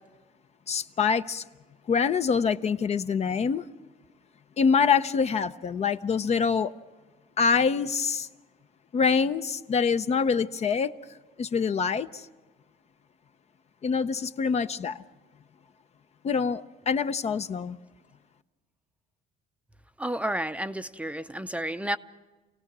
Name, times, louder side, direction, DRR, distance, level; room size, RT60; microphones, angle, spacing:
voice 1, 0.7-1.4 1.9-3.6 4.6-6.7 7.4-8.3 8.9-10.9 11.4-12.2 13.8-15.0 16.2-17.8, left 6 dB, 40° left, 0.7 m, -25 dB
voice 2, 20.0-22.0, right 1 dB, 10° right, 0.6 m, -31 dB
28.0 x 17.5 x 6.1 m
cardioid pair, 110°, 17 cm